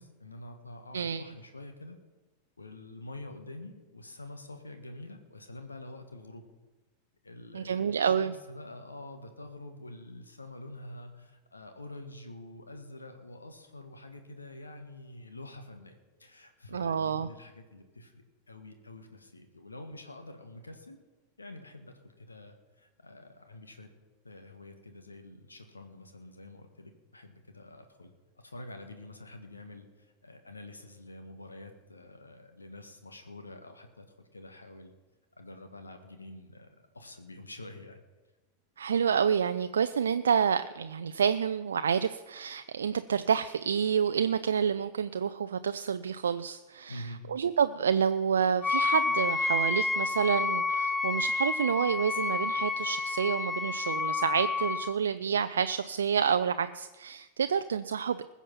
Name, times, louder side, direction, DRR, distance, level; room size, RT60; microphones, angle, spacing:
voice 1, 0.0-2.0 2.6-6.5 7.2-21.0 21.4-23.9 24.2-34.9 35.4-38.0 46.9-47.2, left 2 dB, 80° left, 6 dB, 1.4 m, -47 dB
voice 2, 7.5-8.3 16.7-17.3 38.8-58.3, right 7 dB, 70° right, 10 dB, 0.4 m, -28 dB
Wind instrument woodwind instrument, 48.6-55.0, left 4 dB, 10° left, 0.4 m, -30 dB
20.5 x 7.2 x 5.6 m, 1.2 s
figure-of-eight pair, 90°, 0 cm